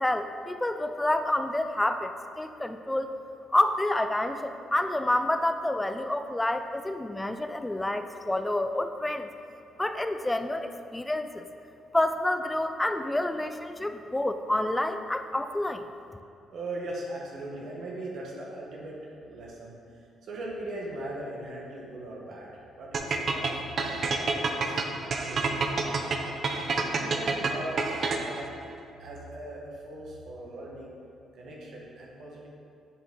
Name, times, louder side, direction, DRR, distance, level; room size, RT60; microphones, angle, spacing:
voice 1, 0.0-3.1 3.5-9.3 9.8-11.4 11.9-15.8, left 1 dB, 10° left, 8 dB, 0.4 m, -28 dB
voice 2, 16.5-30.9 31.3-32.5, right 1 dB, 70° right, -3 dB, 1.4 m, -40 dB
sound 1, 22.9-28.5, right 4 dB, 50° right, 0.7 m, -28 dB
9.0 x 4.9 x 3.9 m, 2.4 s
cardioid pair, 90°, 0 cm